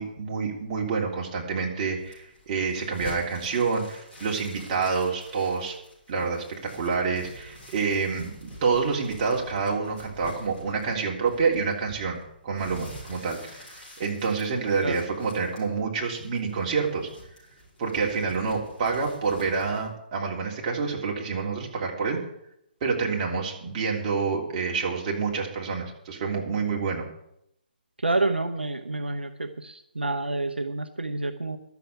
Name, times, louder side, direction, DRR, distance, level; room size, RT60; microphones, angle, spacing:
voice 1, 0.0-5.7 6.1-17.1 17.8-22.2 22.8-27.1, right 5 dB, 35° right, -1 dB, 3.4 m, -28 dB
sound 1, 2.0-19.9, equal, 5° left, 6.1 m, -47 dB
voice 2, 28.0-31.6, right 2 dB, 90° right, 7 dB, 1.0 m, -28 dB
12.0 x 7.1 x 9.4 m, 0.77 s
figure-of-eight pair, 140°, 5 cm